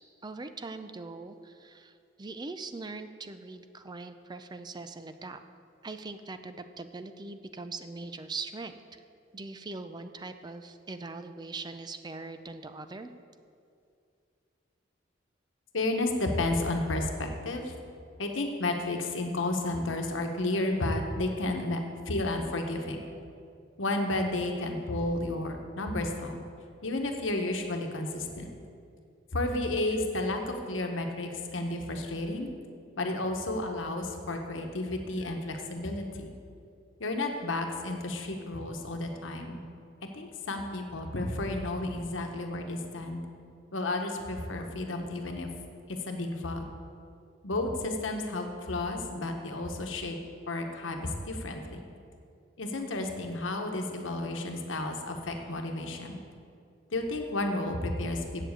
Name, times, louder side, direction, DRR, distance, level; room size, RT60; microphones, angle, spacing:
voice 1, 0.2-1.9 2.2-5.4 5.8-9.0 9.3-13.1, right 3 dB, 20° right, 9 dB, 0.4 m, -41 dB
voice 2, 15.7-17.7 18.2-21.8 22.1-23.0 23.8-26.4 26.8-28.5 29.3-32.5 33.0-36.3 37.0-39.6 40.0-43.2 43.7-45.5 46.1-46.6 47.4-50.2 50.5-51.8 52.6-56.2 56.9-58.5, left 2 dB, 85° left, 4 dB, 1.1 m, -32 dB
7.7 x 7.2 x 8.0 m, 2.4 s
head